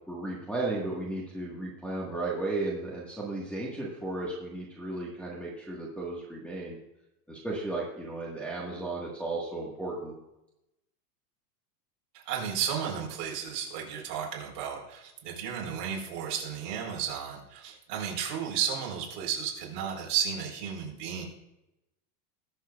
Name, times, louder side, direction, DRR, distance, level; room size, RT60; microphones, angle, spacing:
voice 1, 0.1-6.8 7.3-10.1, right 2 dB, 5° left, -7 dB, 1.6 m, -34 dB
voice 2, 12.1-21.3, right 8 dB, 50° right, -2 dB, 4.2 m, -33 dB
21.0 x 7.4 x 2.4 m, 0.90 s
supercardioid pair, 155°, 48 cm